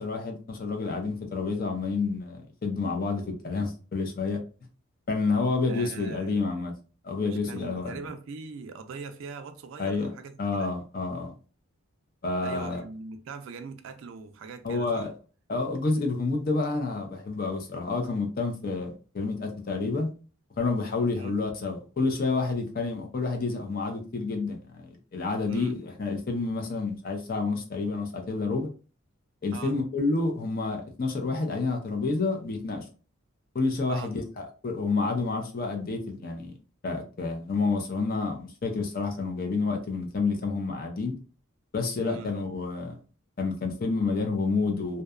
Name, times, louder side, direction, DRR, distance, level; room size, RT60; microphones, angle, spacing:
voice 1, 0.0-4.4 5.1-6.7 7.0-8.0 9.8-10.1 10.4-11.3 12.2-12.8 14.6-15.1 15.5-20.1 20.6-28.7 29.4-32.9 33.5-36.5 36.8-41.1 41.7-43.0 43.4-45.0, left 3 dB, 40° left, 0.4 m, -29 dB
voice 2, 5.7-6.4 7.2-10.7 12.4-15.1 21.1-21.3 25.5-25.7 29.5-29.8 33.9-34.1 42.0-42.3, right 4 dB, 65° right, 0.3 m, -41 dB
2.6 x 2.2 x 2.3 m
head